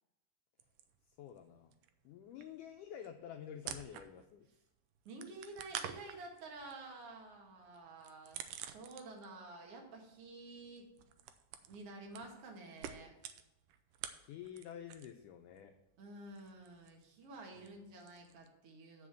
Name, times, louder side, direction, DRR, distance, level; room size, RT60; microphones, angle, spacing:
sound 1, 0.6-1.5 1.7-4.5 4.7-9.4 9.7-15.3 15.5-18.5, right 10 dB, 90° right, 1.8 m, -49 dB
voice 1, 1.1-1.7 2.0-4.5 14.2-15.7 17.5-17.7, left 9 dB, 90° left, 5 dB, 1.8 m, -49 dB
voice 2, 5.0-10.9 11.6-13.1 16.0-19.1, right 2 dB, 45° right, 0 dB, 2.4 m, -51 dB
8.4 x 5.6 x 7.4 m, 0.93 s
omnidirectional pair, 4.3 m